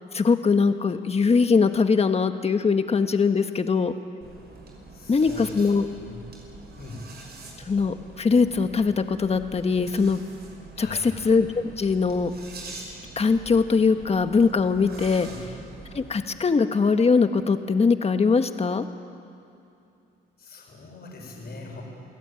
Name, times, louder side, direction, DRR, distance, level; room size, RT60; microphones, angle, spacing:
voice 1, 0.1-3.9 5.1-5.8 7.7-10.2 10.8-12.3 13.2-15.3 15.9-18.9, left 5 dB, 30° left, 8 dB, 1.5 m, -21 dB
sound 1, 4.2-16.1, right 3 dB, 55° right, 6.0 m, -44 dB
voice 2, 4.9-5.7 6.0-6.2 6.7-7.0 10.7-11.1 15.2-15.4 20.4-21.8, left 3 dB, 55° left, -1 dB, 6.8 m, -42 dB
27.5 x 17.5 x 9.1 m, 2.7 s
cardioid pair, 90°, 20 cm